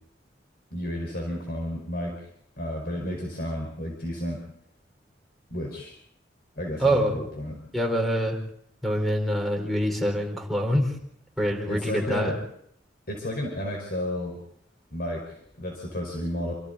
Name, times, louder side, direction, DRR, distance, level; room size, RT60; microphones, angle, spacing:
voice 1, 0.7-2.3 2.6-4.4 5.5-5.9 6.5-7.6 11.7-12.4 13.1-14.4 14.9-16.5, left 1 dB, 55° left, 1 dB, 5.1 m, -32 dB
voice 2, 6.8-7.2 7.7-8.4 8.8-10.9 11.4-12.3, equal, ahead, 3 dB, 4.7 m, -25 dB
27.5 x 27.0 x 4.2 m, 0.69 s
head